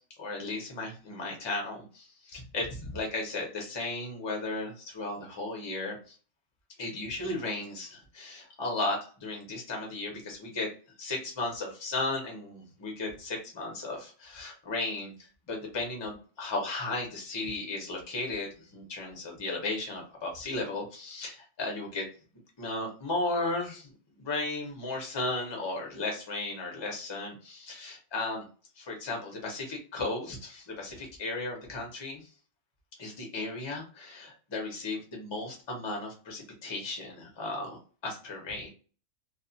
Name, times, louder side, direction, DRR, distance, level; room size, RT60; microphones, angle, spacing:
voice 1, 0.2-6.2 6.8-10.7 11.0-22.1 22.6-23.9 24.2-28.4 28.8-32.3 33.0-38.7, left 2 dB, 30° left, 0 dB, 0.5 m, -35 dB
2.4 x 2.4 x 2.6 m, 0.38 s
omnidirectional pair, 1.6 m